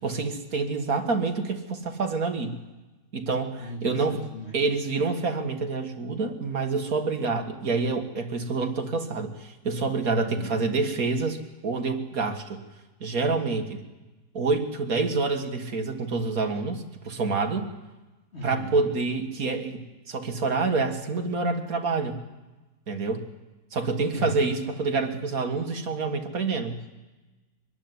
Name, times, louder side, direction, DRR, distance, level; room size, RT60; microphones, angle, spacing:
voice 1, 0.0-2.5 3.1-4.2 4.5-11.4 11.6-12.6 13.0-13.8 14.3-17.6 18.4-19.8 20.1-22.2 22.9-23.2 23.7-26.8, right 4 dB, 55° right, 4 dB, 2.1 m, -27 dB
voice 2, 3.6-4.6 10.2-10.6 18.3-18.9 24.1-24.3 26.8-27.0, right 1 dB, 35° left, 0 dB, 2.8 m, -37 dB
24.0 x 12.0 x 9.6 m, 1.2 s
omnidirectional pair, 1.9 m